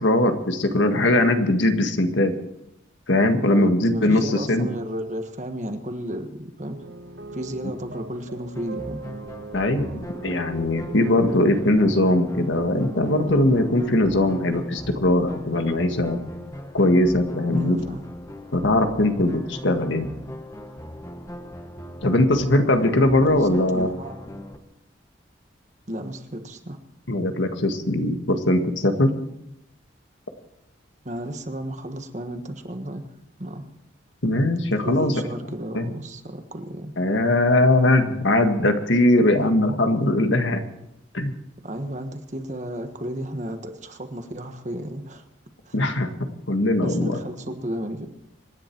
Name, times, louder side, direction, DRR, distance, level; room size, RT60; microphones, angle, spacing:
voice 1, 0.0-2.4 3.1-4.7 9.5-16.3 16.7-17.8 18.5-20.1 22.0-23.9 27.1-29.2 34.2-35.1 35.7-35.9 37.0-40.6 41.1-41.3 45.7-47.2, left 1 dB, 75° left, 6 dB, 1.7 m, -20 dB
voice 2, 3.5-6.8 7.3-9.0 17.5-18.0 23.2-24.4 25.9-26.8 31.0-33.1 33.4-33.6 34.8-36.9 41.6-45.2 45.6-45.7 46.8-48.1, equal, 40° right, 7 dB, 1.4 m, -33 dB
sound 1, 6.6-14.0, right 3 dB, 65° right, 1.4 m, -40 dB
sound 2, 8.5-24.6, equal, 15° left, 1.2 m, -39 dB
26.0 x 10.5 x 4.6 m, 0.82 s
head